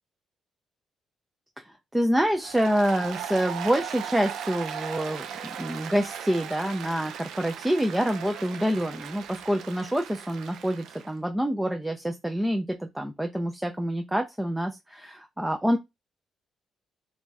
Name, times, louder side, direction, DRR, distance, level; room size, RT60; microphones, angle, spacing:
voice 1, 1.6-5.3 5.6-15.8, equal, 5° right, 0.3 m, -27 dB
Applause, 2.4-11.1, right 8 dB, 85° right, 0.5 m, -38 dB
2.6 x 2.2 x 3.1 m
cardioid pair, 110°, 0 cm